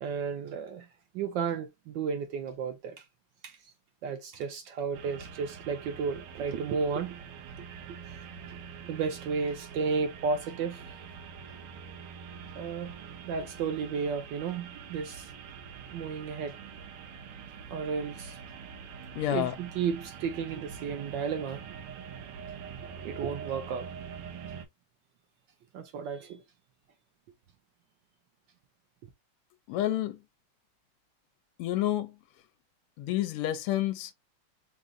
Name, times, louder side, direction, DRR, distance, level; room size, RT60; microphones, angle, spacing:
voice 1, 0.0-0.9 1.1-3.0 3.4-3.6 4.0-7.2 8.9-10.8 12.6-15.3 15.9-16.5 17.7-18.4 19.3-21.6 23.0-23.9 25.7-26.4, right 5 dB, 70° right, 1.2 m, -33 dB
sound 1, 4.9-24.6, right 6 dB, 90° right, 1.6 m, -45 dB
voice 2, 19.1-19.5 29.7-30.2 31.6-32.1 33.0-34.1, left 13 dB, 80° left, 1.5 m, -29 dB
4.0 x 2.4 x 3.6 m
omnidirectional pair, 2.4 m